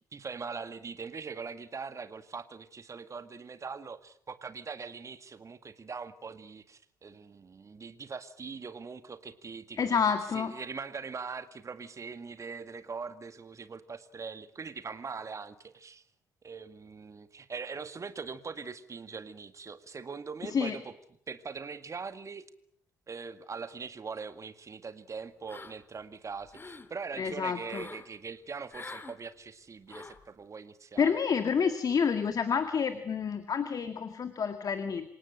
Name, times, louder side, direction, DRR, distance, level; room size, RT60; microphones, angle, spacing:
voice 1, 0.1-16.0 16.4-20.9 21.3-22.4 23.1-31.2, right 5 dB, 35° right, 11 dB, 2.0 m, -42 dB
voice 2, 9.8-10.5 20.4-20.8 27.2-27.8 31.0-35.1, left 6 dB, 40° left, 9 dB, 2.0 m, -29 dB
sound 1, 25.5-26.0 26.3-26.9 27.7-28.1 28.7-29.2 29.9-30.2, left 3 dB, 25° left, 2.6 m, -45 dB
27.5 x 18.0 x 9.0 m, 0.67 s
figure-of-eight pair, 45°, 9 cm